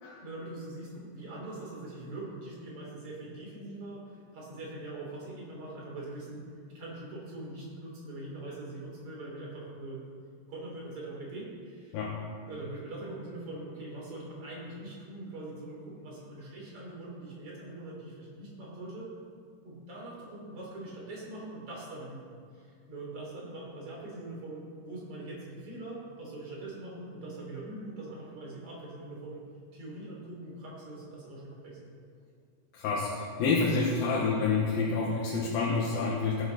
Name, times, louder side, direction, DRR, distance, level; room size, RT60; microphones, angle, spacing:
voice 1, 0.2-6.4 6.7-10.0 10.5-12.0 12.5-19.1 19.6-22.3 22.5-29.4 29.7-31.9, right 2 dB, 40° right, -5 dB, 4.0 m, -42 dB
voice 2, 32.7-36.4, left 4 dB, 80° left, -4 dB, 3.0 m, -28 dB
17.5 x 8.9 x 4.0 m, 2.2 s
omnidirectional pair, 4.1 m